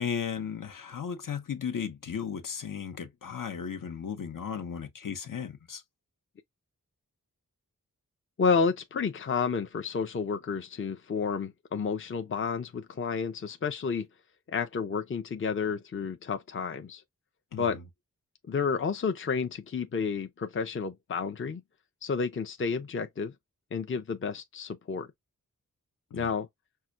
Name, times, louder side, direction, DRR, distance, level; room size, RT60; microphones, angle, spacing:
voice 1, 0.0-5.8 17.5-17.7 26.1-26.3, left 7 dB, 75° left, 0.9 m, -35 dB
voice 2, 8.4-14.1 14.5-17.0 17.6-17.8 18.5-21.6 22.0-23.3 23.7-25.1 26.1-26.5, left 5 dB, 40° left, 0.5 m, -30 dB
5.6 x 2.2 x 2.4 m
wide cardioid pair, 95°, 33 cm